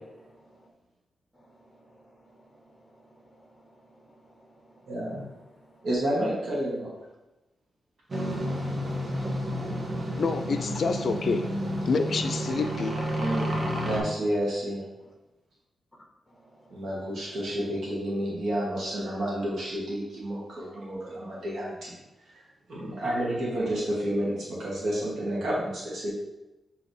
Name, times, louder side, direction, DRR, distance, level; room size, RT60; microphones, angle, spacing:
voice 1, 0.2-0.7 1.3-4.9 5.5-5.9 8.5-10.2 15.0-15.1 16.3-16.9, right 1 dB, 20° left, -3 dB, 1.0 m, -58 dB
voice 2, 4.9-5.3 5.8-6.9 13.2-14.8 16.7-22.0 22.3-22.4 22.7-26.1, right 1 dB, 70° right, -6 dB, 1.2 m, -30 dB
sound 1, 8.1-14.0, equal, 35° right, 0.8 m, -30 dB
voice 3, 10.2-11.5 11.9-13.0, left 4 dB, 60° left, 8 dB, 0.3 m, -27 dB
6.2 x 2.9 x 2.7 m, 1.0 s
wide cardioid pair, 130°, 0 cm